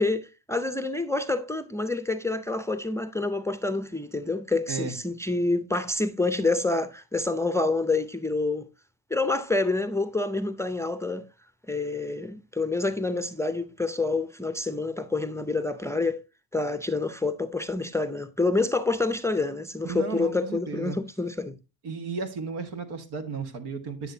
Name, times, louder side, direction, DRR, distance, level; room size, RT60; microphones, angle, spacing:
voice 1, 0.0-8.7 9.1-11.3 11.7-16.2 16.5-21.5, left 3 dB, 5° left, 0.6 m, -27 dB
voice 2, 19.8-21.0 21.8-24.1, right 4 dB, 70° right, 1.6 m, -34 dB
9.9 x 6.8 x 2.7 m
supercardioid pair, 80°, 40 cm